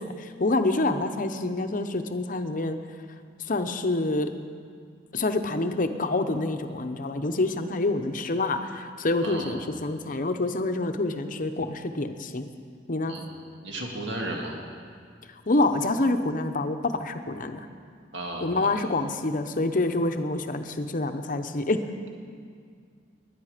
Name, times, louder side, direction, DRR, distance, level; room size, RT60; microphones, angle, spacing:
voice 1, 0.0-2.8 3.5-4.3 5.1-12.5 12.9-13.2 15.5-17.7 18.4-21.8, left 2 dB, 45° left, 8 dB, 0.8 m, -27 dB
voice 2, 9.2-9.5 13.1-13.3 13.6-14.6 18.1-18.8, right 1 dB, 70° right, 0 dB, 2.0 m, -34 dB
19.5 x 10.5 x 5.0 m, 2.1 s
head